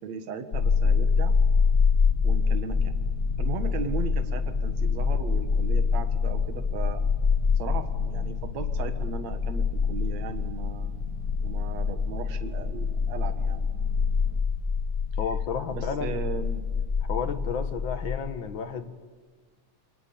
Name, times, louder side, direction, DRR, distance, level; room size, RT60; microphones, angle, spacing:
voice 1, 0.0-1.3 2.2-2.9 3.4-7.0 7.6-11.0 11.4-13.6 15.7-16.7, right 6 dB, 65° right, 7 dB, 2.9 m, -37 dB
sound 1, 0.5-18.2, left 5 dB, 65° left, 0.7 m, -26 dB
sound 2, 2.8-14.4, right 2 dB, 35° right, 2.1 m, -48 dB
voice 2, 15.2-16.2 17.1-19.0, left 6 dB, 50° left, 9 dB, 1.7 m, -32 dB
27.0 x 24.5 x 8.7 m, 1.5 s
omnidirectional pair, 3.4 m